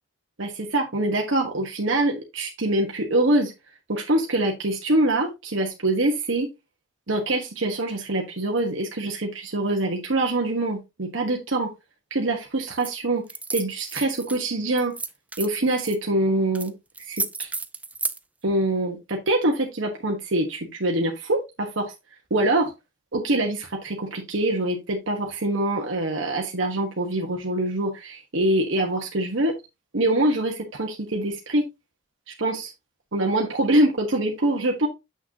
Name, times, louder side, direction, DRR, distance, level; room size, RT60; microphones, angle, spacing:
voice 1, 0.4-3.5 3.9-6.5 7.1-11.7 12.1-13.2 13.5-14.9 15.4-16.7 17.1-17.5 18.4-21.9 22.3-22.7 23.1-29.5 29.9-31.6 32.4-32.7 33.1-34.9, right 1 dB, 85° right, 1 dB, 1.3 m, -24 dB
sound 1, 12.8-13.0 13.3-14.4 14.8-16.0 16.5-16.7 16.9-18.2, right 3 dB, 5° right, 0.4 m, -32 dB
7.0 x 6.2 x 2.8 m, 0.23 s
head